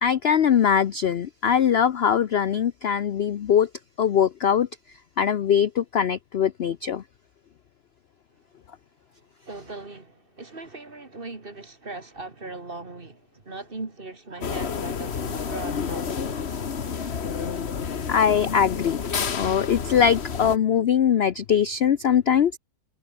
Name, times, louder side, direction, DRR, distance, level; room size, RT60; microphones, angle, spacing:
voice 1, 0.0-3.7 4.0-4.7 5.2-7.0 18.1-19.0 19.3-22.6, left 8 dB, 60° left, 0.6 m, -21 dB
voice 2, 9.5-16.6 16.9-17.4, right 3 dB, 30° right, 2.6 m, -39 dB
sound 1, 14.4-20.6, left 6 dB, 40° left, 1.4 m, -30 dB
omnidirectional pair, 1.9 m